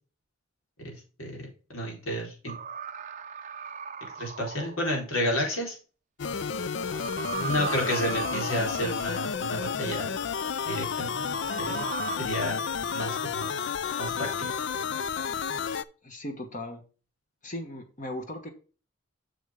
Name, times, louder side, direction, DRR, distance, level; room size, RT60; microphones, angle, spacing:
voice 1, 0.8-2.5 4.2-5.8 7.3-10.1 10.6-11.9 12.2-12.7 12.9-13.6 14.0-14.3, equal, 85° left, -1 dB, 4.1 m, -31 dB
sound 1, 2.5-5.0 6.8-9.4 11.0-12.2, right 6 dB, 35° right, 0.5 m, -37 dB
sound 2, 6.2-15.8, left 6 dB, 55° left, 0.4 m, -31 dB
voice 2, 16.0-16.8 17.4-18.5, left 1 dB, 40° left, 5 dB, 1.3 m, -37 dB
7.6 x 6.7 x 3.6 m, 0.36 s
head